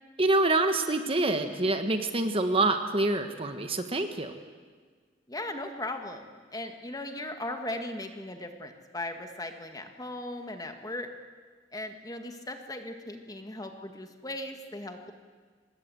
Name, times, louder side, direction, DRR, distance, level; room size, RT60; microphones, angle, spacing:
voice 1, 0.2-4.3, right 2 dB, 35° right, 7 dB, 1.4 m, -26 dB
voice 2, 5.3-11.1 11.7-15.1, left 1 dB, 20° left, 5 dB, 1.9 m, -38 dB
24.5 x 20.5 x 7.9 m, 1.5 s
head